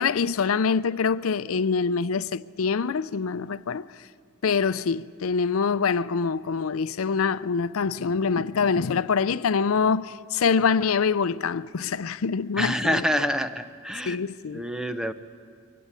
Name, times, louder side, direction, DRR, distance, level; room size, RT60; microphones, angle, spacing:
voice 1, 0.0-3.8 4.4-13.0 14.1-14.6, left 5 dB, 80° left, 0.5 m, -25 dB
voice 2, 12.6-14.2 14.5-15.1, equal, 5° right, 0.7 m, -27 dB
24.0 x 17.0 x 9.7 m
head